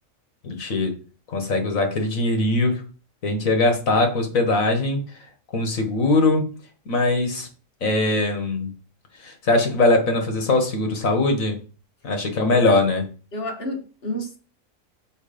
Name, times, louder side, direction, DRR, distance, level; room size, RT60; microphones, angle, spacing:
voice 1, 0.4-1.0 1.3-2.8 3.2-5.0 5.5-6.4 6.9-7.5 7.8-8.7 9.2-11.6 12.0-13.1, left 2 dB, 80° left, 1.9 m, -21 dB
voice 2, 12.4-12.7 13.3-14.4, left 1 dB, 50° left, 1.8 m, -30 dB
6.4 x 4.9 x 5.1 m
omnidirectional pair, 1.4 m